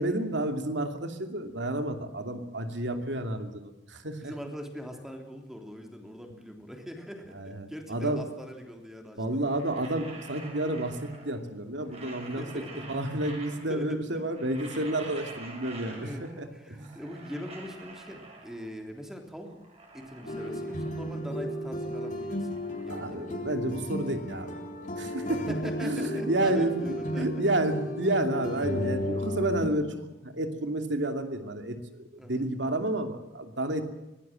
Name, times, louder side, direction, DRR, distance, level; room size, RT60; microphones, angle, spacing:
voice 1, 0.0-4.3 7.3-8.2 9.2-16.9 22.9-24.6 25.0-25.4 25.8-33.8, right 1 dB, 75° right, 6 dB, 2.7 m, -31 dB
voice 2, 4.2-9.4 12.2-12.9 13.7-14.3 15.8-19.6 19.9-22.6 22.8-23.4 25.3-27.3 32.2-32.5, equal, ahead, 3 dB, 3.5 m, -42 dB
sound 1, 9.3-11.4 11.7-13.9 14.2-16.5 16.7-18.8 19.3-21.3 21.6-23.8, right 3 dB, 35° right, 6.2 m, -47 dB
sound 2, 20.3-29.7, equal, 45° left, 3.7 m, -34 dB
23.5 x 18.0 x 7.7 m, 1.0 s
head